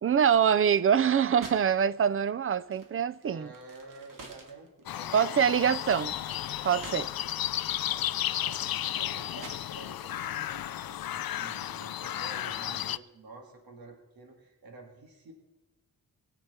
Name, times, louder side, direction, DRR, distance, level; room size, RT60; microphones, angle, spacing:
voice 1, 0.0-3.5 5.1-6.1 6.6-7.0, right 8 dB, 40° right, 0.4 m, -24 dB
sound 1, 0.7-1.8 2.1-7.5 7.8-10.1, right 3 dB, 65° right, 2.4 m, -49 dB
voice 2, 3.2-5.8 6.9-7.1 7.9-8.1 8.4-8.6 9.0-15.3, right 3 dB, 85° right, 2.3 m, -49 dB
sound 2, 4.9-13.0, left 12 dB, 80° left, 0.5 m, -33 dB
22.0 x 8.1 x 4.3 m
wide cardioid pair, 140°, 35 cm